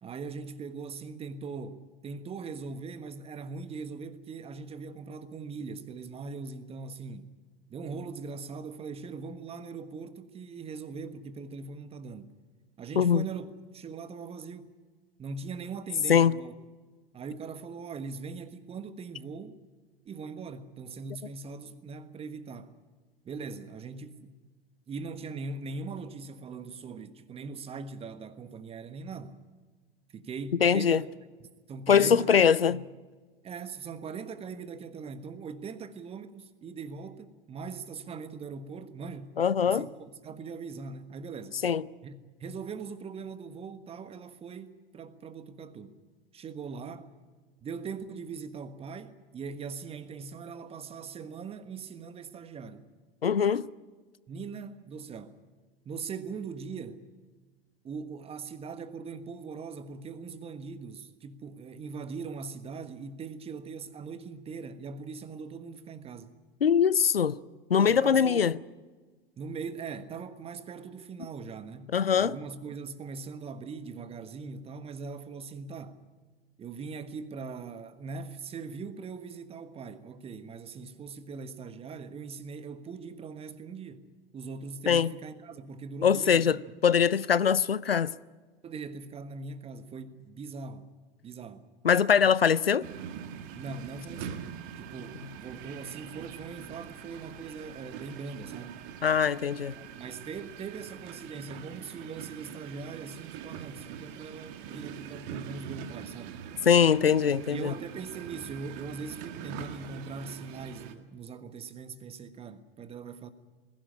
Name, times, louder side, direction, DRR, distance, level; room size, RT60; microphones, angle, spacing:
voice 1, 0.0-7.3 7.7-12.3 12.8-13.5 13.7-14.7 15.2-16.5 17.1-19.6 20.0-22.7 23.2-24.3 24.9-29.4 30.1-31.0 31.4-32.4 32.7-32.8 33.4-39.3 39.7-41.6 42.0-46.0 46.3-47.1 47.6-52.9 54.3-55.3 55.8-57.0 57.8-66.3 67.8-68.5 69.4-76.0 76.6-84.1 84.3-86.5 88.6-90.9 91.2-91.7 92.2-92.3 93.6-94.5 94.8-98.8 99.8-106.4 107.5-113.3, right 5 dB, 20° right, 1.4 m, -41 dB
voice 2, 30.6-31.0 31.9-32.8 39.4-39.9 41.6-41.8 53.2-53.7 66.6-67.4 67.7-68.5 71.9-72.4 84.9-85.1 86.0-88.1 91.8-92.8 99.0-99.8 106.7-107.7, left 7 dB, 80° left, 0.6 m, -22 dB
sound 1, 92.8-110.9, right 9 dB, 45° right, 2.0 m, -43 dB
20.5 x 16.5 x 10.0 m
figure-of-eight pair, 95°, 29 cm